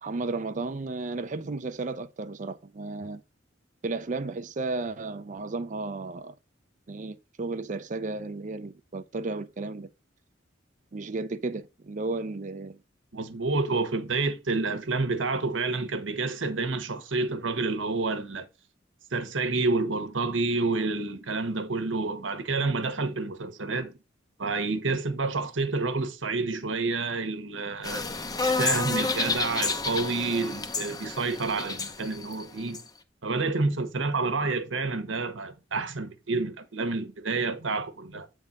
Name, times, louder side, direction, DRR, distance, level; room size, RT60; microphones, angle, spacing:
voice 1, 0.0-3.2 3.8-6.3 6.9-9.9 10.9-12.8, right 3 dB, 40° right, 0.5 m, -33 dB
voice 2, 13.1-18.5 19.1-23.9 24.4-28.0 28.4-32.8 33.2-38.3, right 3 dB, 85° right, 1.2 m, -29 dB
sound 1, 27.8-32.8, left 4 dB, 20° left, 0.7 m, -30 dB
8.5 x 3.6 x 5.1 m
head